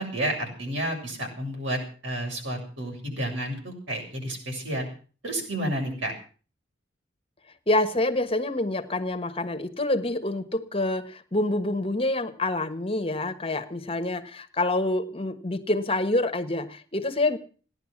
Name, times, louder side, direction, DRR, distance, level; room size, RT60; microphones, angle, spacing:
voice 1, 0.0-4.9 5.2-6.1, right 1 dB, 85° right, 1 dB, 7.3 m, -31 dB
voice 2, 7.7-17.4, left 2 dB, 30° left, 7 dB, 1.4 m, -27 dB
17.0 x 11.0 x 7.3 m, 0.41 s
head